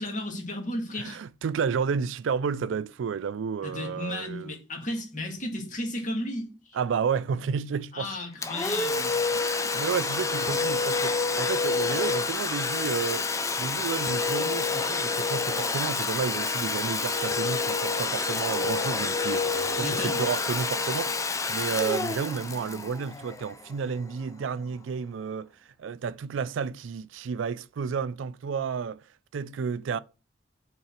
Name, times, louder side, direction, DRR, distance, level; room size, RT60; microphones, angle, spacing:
voice 1, 0.0-1.2 3.6-6.8 7.9-9.1 19.8-20.2, left 1 dB, 40° left, 1.9 m, -34 dB
voice 2, 1.0-4.6 6.7-8.1 9.3-13.3 13.6-21.1 21.5-25.5 25.8-29.0 29.3-30.0, right 6 dB, 90° right, 0.4 m, -31 dB
Domestic sounds home sounds, 8.4-23.9, left 4 dB, 15° left, 0.4 m, -28 dB
5.6 x 3.8 x 5.8 m
head